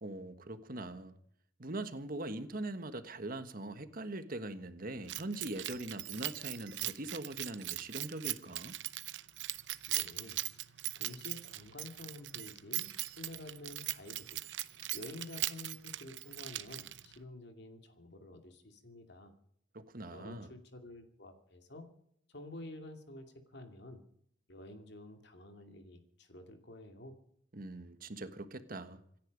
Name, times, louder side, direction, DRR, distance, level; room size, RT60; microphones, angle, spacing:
voice 1, 0.0-1.2 1.6-8.8 19.7-20.5 27.5-29.0, right 2 dB, 50° right, 1.5 m, -42 dB
Keys jangling, 5.1-17.2, right 15 dB, 65° right, 0.8 m, -40 dB
voice 2, 9.9-10.4 11.0-14.4 14.9-19.3 20.1-21.9 22.3-24.0 24.5-27.2, left 2 dB, 60° left, 2.5 m, -50 dB
26.5 x 10.5 x 5.3 m
head